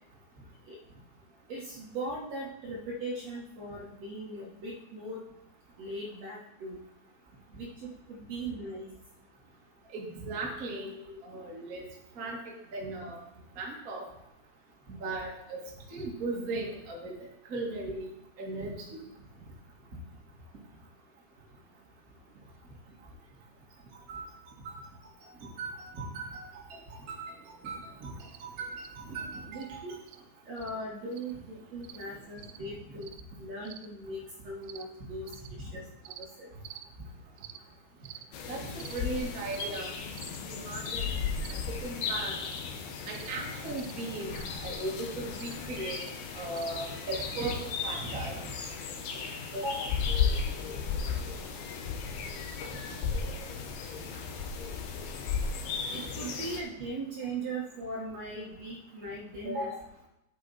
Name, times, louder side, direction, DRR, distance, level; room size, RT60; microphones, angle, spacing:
voice 1, 1.5-5.2 5.8-6.8 7.5-8.9 11.1-11.2 29.5-30.0 30.4-33.1 33.4-36.5 49.5-50.0 55.9-59.9, right 1 dB, 65° right, -4 dB, 1.6 m, -39 dB
voice 2, 9.9-10.9 11.2-11.8 12.2-12.4 12.7-13.2 13.6-14.0 14.9-15.6 15.9-17.1 17.5-18.1 18.4-19.0 24.1-24.2 24.6-24.8 25.6-26.8 27.1-28.3 28.6-29.8 38.5-39.9 40.5-41.1 41.7-42.3 43.1-46.0 46.3-48.4, right 2 dB, 45° right, -2 dB, 1.1 m, -37 dB
sound 1, 28.3-28.4 28.8-28.9 29.6-29.7 30.1-30.2 30.6-30.7 31.1-31.3 31.8-32.0 32.4-32.6 33.0-33.2 33.6-33.9 34.6-34.8 35.3-35.5 36.0-36.3 36.6-36.8 37.4-37.6 38.0-38.2 38.8-39.0 39.5-39.7 40.2-40.4 40.8-41.1 41.4-41.7 42.4-42.6 43.1-43.3 43.8-43.9 44.3-44.5 45.4-45.5 45.9-46.1 46.6-46.7 47.1-47.3, right 13 dB, 80° right, 2.5 m, -48 dB
sound 2, 38.3-56.6, left 6 dB, 70° left, 2.7 m, -35 dB
11.0 x 8.2 x 4.1 m, 0.84 s
omnidirectional pair, 5.1 m